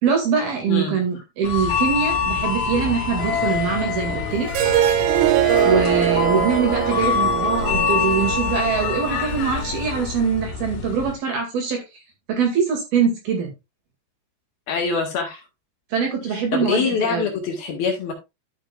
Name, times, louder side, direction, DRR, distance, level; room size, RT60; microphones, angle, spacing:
voice 1, 0.0-4.5 5.6-11.8 12.3-13.5 15.9-17.3, right 6 dB, 55° right, 3 dB, 3.7 m, -23 dB
voice 2, 0.7-1.0 14.7-15.4 16.5-18.1, left 5 dB, 60° left, 1 dB, 3.3 m, -24 dB
sound 1, 1.5-11.1, left 6 dB, 80° left, 4.6 m, -25 dB
Harp, 4.5-9.6, right 11 dB, 90° right, 3.4 m, -22 dB
13.5 x 6.4 x 2.4 m, 0.24 s
omnidirectional pair, 5.7 m